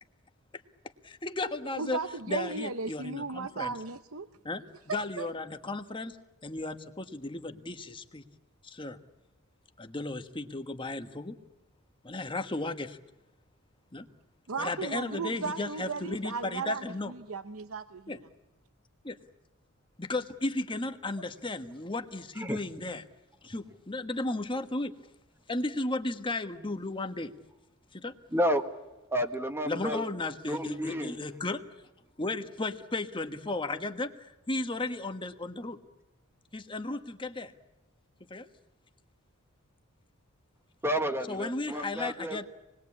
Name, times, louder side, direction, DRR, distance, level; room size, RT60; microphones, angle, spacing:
voice 1, 1.0-2.0 2.3-3.8 4.4-6.2 6.4-8.2 8.6-9.0 9.8-11.4 12.0-13.0 13.9-14.1 14.6-17.1 18.1-18.2 19.0-19.2 20.0-23.0 23.4-24.9 25.5-27.3 27.9-28.1 29.6-31.7 32.2-35.8 36.5-37.5 38.3-38.5 41.3-42.5, left 2 dB, 20° left, 7 dB, 1.4 m, -35 dB
voice 2, 1.7-4.3 4.9-5.3 14.5-18.3, right 4 dB, 65° right, 10 dB, 0.8 m, -36 dB
voice 3, 28.3-28.6 29.1-30.0 30.5-31.2 40.8-42.4, equal, 10° right, 7 dB, 1.6 m, -30 dB
27.5 x 20.5 x 8.6 m, 1.1 s
head